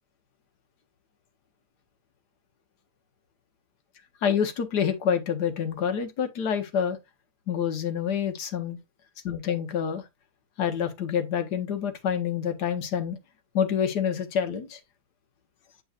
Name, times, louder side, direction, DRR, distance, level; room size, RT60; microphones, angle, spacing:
voice 1, 4.2-7.0 7.5-8.8 9.2-10.0 10.6-13.2 13.5-14.8, left 8 dB, 80° left, 1.6 m, -27 dB
7.7 x 5.4 x 2.4 m
omnidirectional pair, 1.7 m